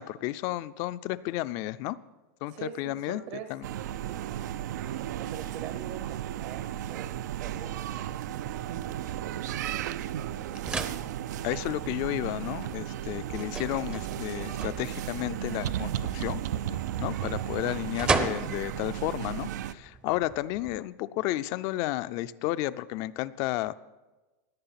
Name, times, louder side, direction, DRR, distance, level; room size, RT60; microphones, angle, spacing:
voice 1, 0.0-2.0 2.4-3.2 3.5-3.6 11.4-16.4 17.0-23.7, left 16 dB, 35° left, 15 dB, 0.4 m, -32 dB
voice 2, 2.5-3.5 3.8-4.5 5.2-9.8 10.1-10.7, right 9 dB, 40° right, 7 dB, 0.8 m, -45 dB
sound 1, 3.6-19.7, right 11 dB, 85° right, 0.6 m, -34 dB
sound 2, 10.0-20.8, right 3 dB, 10° right, 0.6 m, -38 dB
17.5 x 10.5 x 5.8 m, 1.2 s
supercardioid pair, 175°, 9 cm